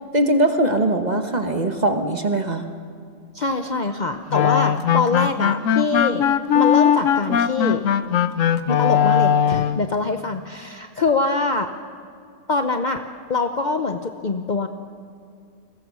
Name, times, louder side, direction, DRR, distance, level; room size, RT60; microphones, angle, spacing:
voice 1, 0.1-2.6, right 1 dB, 35° right, 6 dB, 1.3 m, -21 dB
voice 2, 3.3-7.8 8.7-11.7 12.5-13.0 13.3-14.7, left 3 dB, 40° left, 7 dB, 0.9 m, -24 dB
sound 1, 4.3-9.8, left 8 dB, 90° left, 1.1 m, -19 dB
29.5 x 21.5 x 6.3 m, 2.3 s
omnidirectional pair, 1.3 m